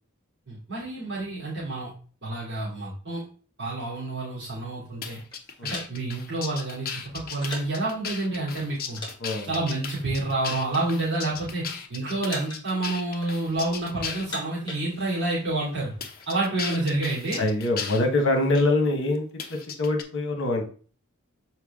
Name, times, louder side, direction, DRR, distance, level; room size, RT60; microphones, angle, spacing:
voice 1, 0.5-1.9 2.2-3.2 3.6-5.2 5.6-9.0 9.4-11.6 11.9-15.9 16.3-17.4, right 2 dB, 55° right, -7 dB, 2.6 m, -29 dB
sound 1, 5.0-14.3 15.0-15.2 16.0-18.0 19.4-20.0, left 6 dB, 45° left, 0.9 m, -36 dB
sound 2, 5.3-7.9 8.5-9.2 9.4-9.6 10.3-11.1 11.4-11.8 12.3-12.8 13.0-13.7 14.1-15.3 15.6-15.7 15.9-16.3 16.8-18.7, left 2 dB, 20° left, 1.9 m, -42 dB
voice 2, 9.2-9.6 17.4-20.7, left 2 dB, 60° left, 4 dB, 1.3 m, -24 dB
6.9 x 4.6 x 3.6 m, 0.40 s
head